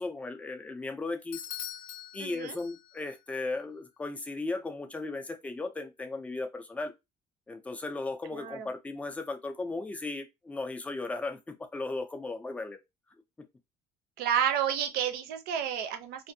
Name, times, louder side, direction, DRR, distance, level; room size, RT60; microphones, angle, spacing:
voice 1, 0.0-1.4 2.1-6.9 7.5-12.8, left 3 dB, 10° left, 0.3 m, -36 dB
Bell / Doorbell, 1.3-3.2, left 11 dB, 70° left, 0.5 m, -43 dB
voice 2, 2.2-2.6 8.3-8.7 14.2-16.3, right 9 dB, 75° right, 0.6 m, -30 dB
2.5 x 2.4 x 2.6 m
cardioid pair, 165°, 16 cm